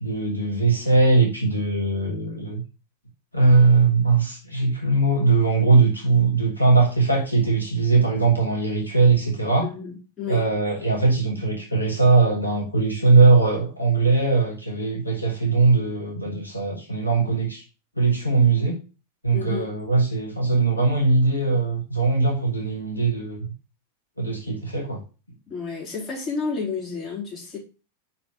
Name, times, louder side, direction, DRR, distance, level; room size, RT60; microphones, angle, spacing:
voice 1, 0.0-2.6 3.3-9.7 10.3-17.6 18.0-18.8 19.2-23.5 24.2-25.0, right 3 dB, 90° left, 1.5 m, -20 dB
voice 2, 9.6-10.5 19.3-19.7 25.5-27.6, left 5 dB, 25° left, 3.7 m, -31 dB
5.5 x 4.4 x 5.2 m
figure-of-eight pair, 90°, 0 cm